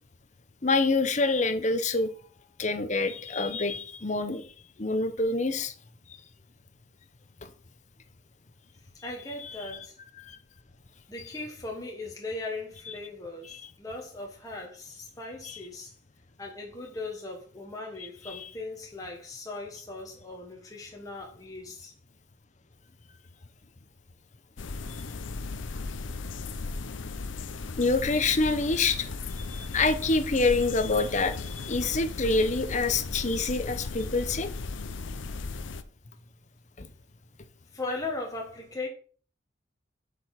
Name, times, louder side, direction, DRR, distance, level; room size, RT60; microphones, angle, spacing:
voice 1, 0.6-2.1 2.6-4.4 4.8-5.7 10.3-10.4 13.5-13.6 18.3-18.4 27.8-29.1 29.4-34.5 36.8-36.9, left 3 dB, 35° left, 0.8 m, -26 dB
voice 2, 8.8-10.0 11.1-15.9 16.4-21.9 37.7-38.9, left 2 dB, 20° left, 1.2 m, -38 dB
sound 1, 24.6-35.8, left 3 dB, 75° left, 0.7 m, -36 dB
7.9 x 5.2 x 5.8 m
head